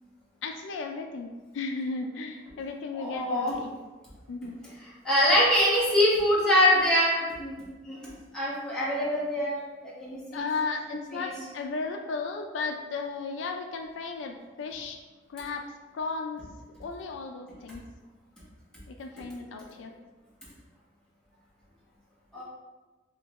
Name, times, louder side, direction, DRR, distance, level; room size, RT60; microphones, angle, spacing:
voice 1, 0.4-3.8 4.3-4.6 10.3-15.0 15.3-15.7 15.9-16.4 16.8-17.8 18.9-19.9, left 4 dB, 80° left, 4 dB, 0.3 m, -35 dB
voice 2, 2.9-3.6 5.0-7.6 7.8-8.1 8.3-9.5 9.8-10.4 11.1-11.3 22.3-22.4, left 1 dB, 5° left, -10 dB, 1.1 m, -24 dB
3.2 x 2.7 x 3.1 m, 1.2 s
head